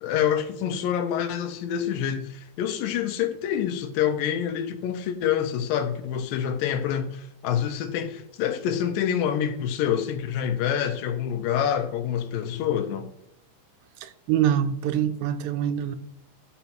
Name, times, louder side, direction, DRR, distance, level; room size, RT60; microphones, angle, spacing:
voice 1, 0.0-13.1, left 9 dB, 80° left, 2.3 m, -27 dB
voice 2, 14.0-16.0, right 10 dB, 85° right, 2.4 m, -25 dB
12.5 x 5.6 x 3.0 m
omnidirectional pair, 4.1 m